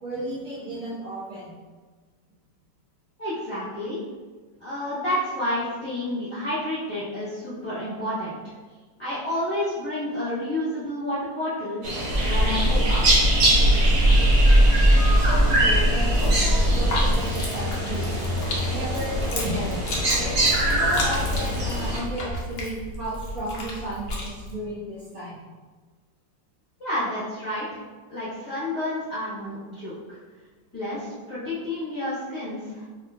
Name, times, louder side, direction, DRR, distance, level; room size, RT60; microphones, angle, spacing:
voice 1, 0.0-1.5 15.2-18.2 18.7-20.4 20.6-25.4, right 1 dB, 60° right, -8 dB, 1.2 m, -33 dB
voice 2, 3.2-4.0 4.6-8.5 9.0-11.8 12.2-13.3 21.2-21.3 26.8-27.8 28.1-30.2 30.7-32.8, left 1 dB, 20° left, -12 dB, 0.8 m, -30 dB
sound 1, 11.8-22.0, right 1 dB, 85° right, 1.6 m, -24 dB
sound 2, 12.1-17.2, right 1 dB, 25° right, 0.6 m, -20 dB
sound 3, 16.1-24.5, left 1 dB, 75° left, 0.5 m, -33 dB
3.8 x 2.8 x 2.2 m, 1.4 s
omnidirectional pair, 1.9 m